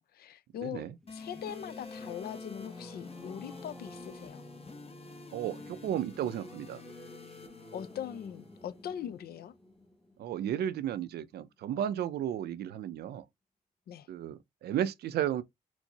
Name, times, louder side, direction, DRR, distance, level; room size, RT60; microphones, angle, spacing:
voice 1, 0.0-4.4 7.7-9.5 13.9-14.1, left 10 dB, 75° left, 0.4 m, -41 dB
voice 2, 0.6-0.9 5.3-6.8 10.2-13.3 14.1-15.4, right 10 dB, 80° right, 0.4 m, -33 dB
Singing / Musical instrument, 1.0-11.1, left 1 dB, ahead, 0.8 m, -52 dB
sound 1, 1.1-9.1, left 4 dB, 40° left, 0.9 m, -48 dB
4.4 x 2.0 x 2.8 m
cardioid pair, 60°, 16 cm